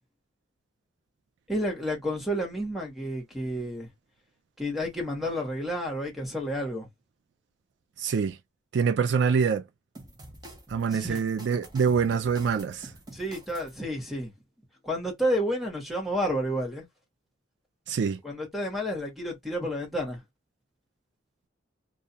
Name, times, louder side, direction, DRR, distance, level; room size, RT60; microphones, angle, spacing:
voice 1, 1.5-3.9 4.6-6.9 10.9-11.2 13.1-14.3 14.8-16.9 18.2-20.2, equal, ahead, 1.0 m, -30 dB
voice 2, 8.0-8.4 8.7-9.6 10.7-12.9 17.9-18.2, right 6 dB, 65° right, 0.3 m, -25 dB
sound 1, 10.0-13.8, right 1 dB, 20° right, 0.7 m, -47 dB
2.3 x 2.2 x 2.7 m
head